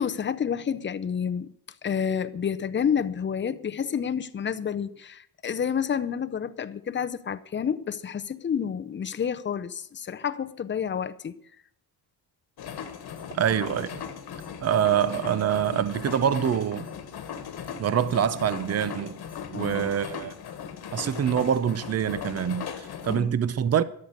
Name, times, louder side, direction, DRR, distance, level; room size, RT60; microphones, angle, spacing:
voice 1, 0.0-1.5 1.8-11.4 19.5-19.9 23.1-23.4, left 7 dB, 30° left, 0.6 m, -29 dB
sound 1, 12.6-23.2, left 7 dB, 75° left, 1.6 m, -38 dB
voice 2, 13.3-14.0 14.6-16.9 17.8-19.2 19.5-20.3 20.9-23.8, right 9 dB, 40° right, 0.7 m, -25 dB
13.0 x 6.7 x 9.5 m
wide cardioid pair, 175°, 38 cm